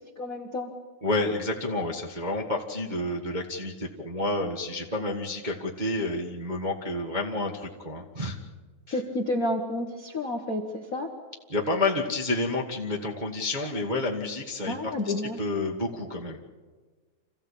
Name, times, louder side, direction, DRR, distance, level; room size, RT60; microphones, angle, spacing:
voice 1, 0.2-0.7 8.9-11.1 14.6-15.4, left 1 dB, 45° left, 2 dB, 1.1 m, -30 dB
voice 2, 1.0-8.4 11.5-16.4, left 2 dB, 25° right, -1 dB, 0.9 m, -30 dB
27.0 x 15.5 x 8.4 m, 1.4 s
omnidirectional pair, 3.5 m